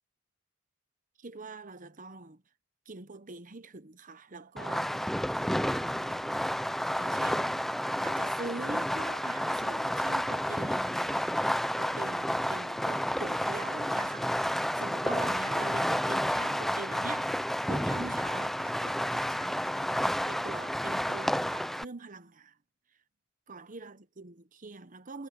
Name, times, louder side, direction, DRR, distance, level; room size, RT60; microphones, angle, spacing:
voice 1, 1.2-2.4 2.9-5.0 5.6-6.3 7.0-7.6 8.0-17.3 17.6-22.6 23.5-25.3, right 3 dB, 40° right, 1.0 m, -44 dB
Fireworks, 4.6-21.8, equal, ahead, 0.5 m, -30 dB
head